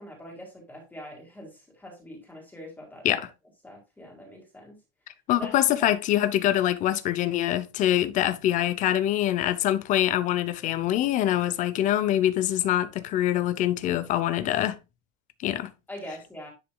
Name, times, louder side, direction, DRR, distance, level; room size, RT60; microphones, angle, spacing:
voice 1, 0.0-3.1 3.6-4.8 5.4-5.5 5.8-5.9 15.9-16.5, equal, 5° left, 1.8 m, -43 dB
voice 2, 5.3-14.8 15.4-15.7, left 12 dB, 25° left, 0.6 m, -24 dB
10.0 x 5.0 x 2.2 m
cardioid pair, 175°, 29 cm